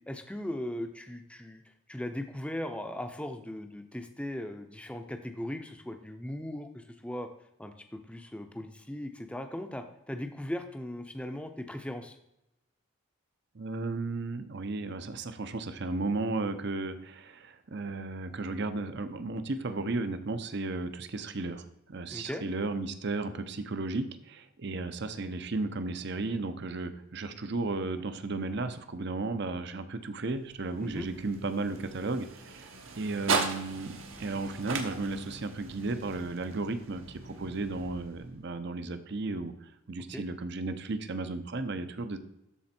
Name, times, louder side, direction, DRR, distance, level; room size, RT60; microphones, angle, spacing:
voice 1, 0.1-1.6 1.9-7.3 7.6-12.2 22.1-22.4 30.8-31.1 40.1-40.2, left 1 dB, 5° left, 7 dB, 0.6 m, -38 dB
voice 2, 13.5-32.7 33.0-42.2, right 3 dB, 55° right, 10 dB, 0.7 m, -34 dB
sound 1, 30.3-38.5, right 4 dB, 70° right, 1.2 m, -38 dB
13.0 x 4.3 x 4.3 m, 0.86 s
head